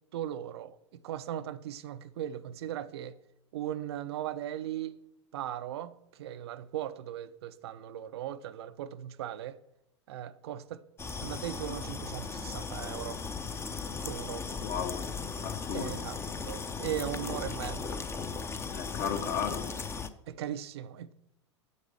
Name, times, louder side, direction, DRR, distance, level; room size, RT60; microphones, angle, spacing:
voice 1, 0.1-3.2 3.5-4.9 5.3-9.6 10.1-10.8 11.2-13.2 14.0-14.5 15.7-16.2 16.4-18.0 20.3-21.1, right 11 dB, 60° right, 0.6 m, -38 dB
sound 1, 11.0-20.1, left 5 dB, 15° left, 0.7 m, -37 dB
voice 2, 14.6-15.2 15.4-15.9 18.7-19.7, left 8 dB, 45° left, 1.3 m, -34 dB
9.6 x 8.1 x 5.8 m
figure-of-eight pair, 85°, 15 cm